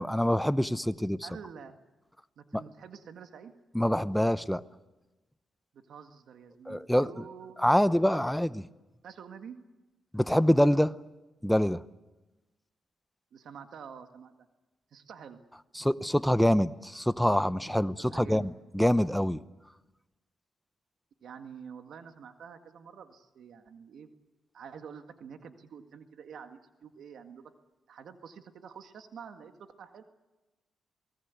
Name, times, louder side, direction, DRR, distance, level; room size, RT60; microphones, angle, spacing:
voice 1, 0.0-1.3 3.7-4.6 6.7-7.1 7.6-8.6 10.1-10.9 11.4-11.8 15.8-19.4, equal, 5° left, 0.7 m, -25 dB
voice 2, 1.2-1.7 2.4-3.5 5.7-8.3 9.0-9.6 13.3-14.3 14.9-15.4 18.0-18.5 21.2-24.1 24.5-27.5 27.9-30.0, right 7 dB, 70° right, 1.8 m, -48 dB
28.0 x 19.0 x 8.3 m
cardioid pair, 90°, 0 cm